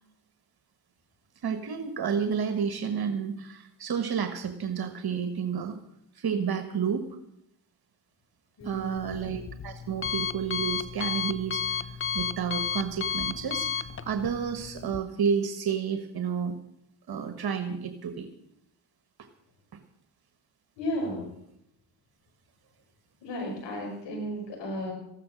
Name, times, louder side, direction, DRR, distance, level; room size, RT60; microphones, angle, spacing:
voice 1, 1.4-5.8 6.1-7.1 8.6-11.6 12.1-13.7 14.0-16.5 17.1-18.3, right 7 dB, 60° right, 7 dB, 1.4 m, -30 dB
voice 2, 8.6-9.2 20.8-21.3 23.2-24.9, equal, 85° left, 1 dB, 5.9 m, -34 dB
Alarm, 8.6-15.0, left 7 dB, 30° left, 0.8 m, -33 dB
14.5 x 12.5 x 6.2 m, 0.78 s
cardioid pair, 65°, 42 cm